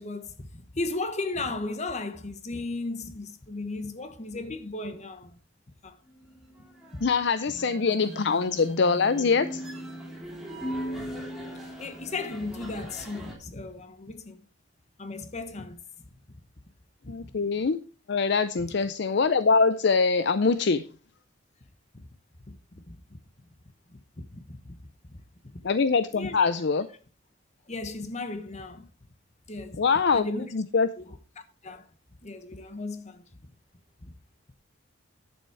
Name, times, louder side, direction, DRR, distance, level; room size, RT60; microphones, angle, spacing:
voice 1, 0.0-5.4 5.8-6.0 6.9-7.0 7.8-7.9 10.6-14.4 15.0-15.8 16.3-16.4 17.0-17.2 18.6-18.9 21.9-22.1 22.5-22.6 22.9-23.0 23.9-25.2 25.5-25.6 26.1-26.5 27.7-28.9 29.5-29.8 30.1-30.5 31.0-31.2 31.6-31.9 32.2-33.2 34.0-34.1, left 2 dB, 35° left, 1.2 m, -36 dB
sound 1, 6.1-13.3, equal, ahead, 3.1 m, -39 dB
voice 2, 7.0-9.6 17.1-17.8 18.1-20.8 25.6-26.9 29.8-30.3 30.5-30.9, left 4 dB, 60° left, 0.5 m, -23 dB
10.0 x 7.2 x 4.6 m
head